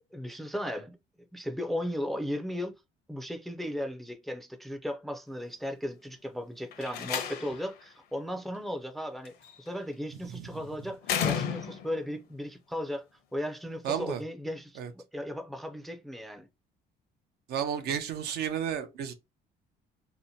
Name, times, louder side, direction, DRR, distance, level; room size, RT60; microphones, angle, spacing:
voice 1, 0.1-1.0 1.3-2.7 3.1-13.1 13.3-16.5, equal, ahead, 0.4 m, -36 dB
Slam, 6.7-7.7 9.3-9.7 11.0-12.0, left 8 dB, 70° left, 0.6 m, -32 dB
voice 2, 10.3-10.6 13.8-14.2 14.8-14.9 17.5-19.2, right 8 dB, 75° right, 0.6 m, -32 dB
2.8 x 2.1 x 2.6 m
cardioid pair, 110°, 17 cm